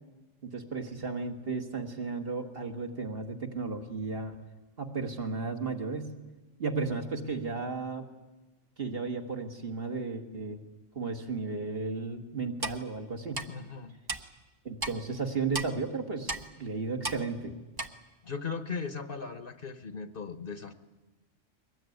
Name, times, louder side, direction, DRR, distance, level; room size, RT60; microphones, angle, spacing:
voice 1, 0.4-4.4 4.8-6.1 6.6-8.1 8.8-10.6 11.0-13.4 14.7-17.5, right 4 dB, 50° right, 3 dB, 1.9 m, -34 dB
Clock, 12.6-12.8 13.3-13.5 14.1-14.2 14.8-14.9 15.5-15.7 16.3-16.4 17.0-17.2 17.8-17.9, right 2 dB, 20° right, 0.9 m, -33 dB
voice 2, 13.5-13.9 18.2-20.7, left 5 dB, 45° left, 10 dB, 1.3 m, -38 dB
22.5 x 19.5 x 9.3 m, 1.1 s
omnidirectional pair, 1.3 m